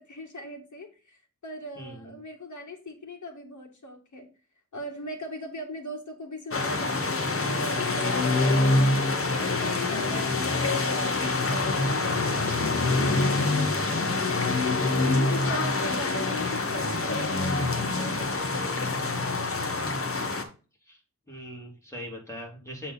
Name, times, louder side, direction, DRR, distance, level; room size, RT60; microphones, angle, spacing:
voice 1, 0.0-4.3 4.7-14.5 15.3-19.5, equal, 75° left, 0 dB, 2.2 m, -40 dB
voice 2, 1.8-2.2 20.8-21.0 21.3-22.9, equal, 10° left, 0 dB, 3.1 m, -41 dB
sound 1, 6.5-20.4, left 3 dB, 45° left, 1.3 m, -26 dB
8.2 x 3.9 x 3.9 m, 0.34 s
wide cardioid pair, 80°, 30 cm